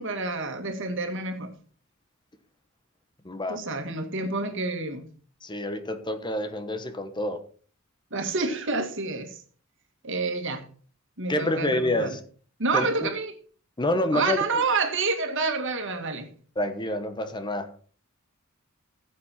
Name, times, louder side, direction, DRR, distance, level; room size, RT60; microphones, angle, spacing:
voice 1, 0.0-1.5 3.5-5.0 8.1-9.4 10.0-10.7 11.2-12.2 12.6-13.3 14.1-16.3, right 3 dB, 60° right, 2.1 m, -28 dB
voice 2, 3.2-3.6 5.4-7.4 11.3-12.2 12.7-12.9 13.8-14.4 16.6-17.7, left 1 dB, 20° left, 1.1 m, -27 dB
15.0 x 7.5 x 4.3 m
head